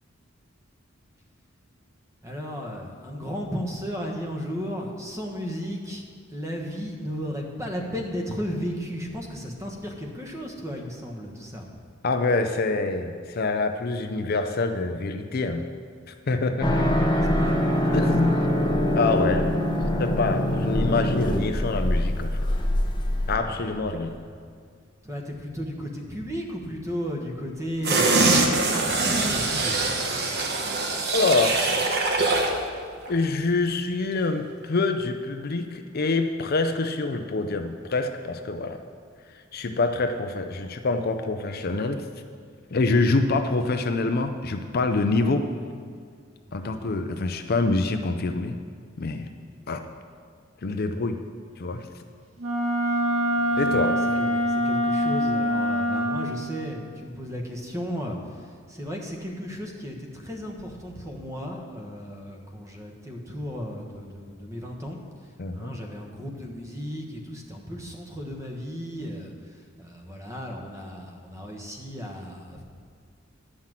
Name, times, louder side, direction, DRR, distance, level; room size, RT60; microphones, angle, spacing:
voice 1, 2.2-6.0 6.3-11.7 17.1-17.6 18.2-18.3 23.4-24.2 25.0-28.4 28.7-29.8 46.5-46.9 49.6-49.7 53.3-65.0 65.5-72.6, equal, 15° right, 1 dB, 1.2 m, -35 dB
voice 2, 12.0-15.7 16.1-16.8 17.9-18.4 18.9-19.5 20.0-22.5 23.3-24.1 31.1-31.6 33.1-38.8 39.5-42.0 42.7-45.5 46.5-48.5 49.0-49.3 49.7-49.8 50.6-51.2 51.6-51.8 53.6-54.0 65.4-65.8, left 3 dB, 50° left, 7 dB, 0.5 m, -26 dB
sound 1, 16.6-23.4, left 1 dB, 20° left, 0.8 m, -24 dB
sound 2, 27.8-32.6 33.0-33.1, right 3 dB, 55° right, 1.1 m, -23 dB
Wind instrument woodwind instrument, 52.4-56.4, equal, 80° right, 1.8 m, -24 dB
11.0 x 5.8 x 7.4 m, 2.1 s
head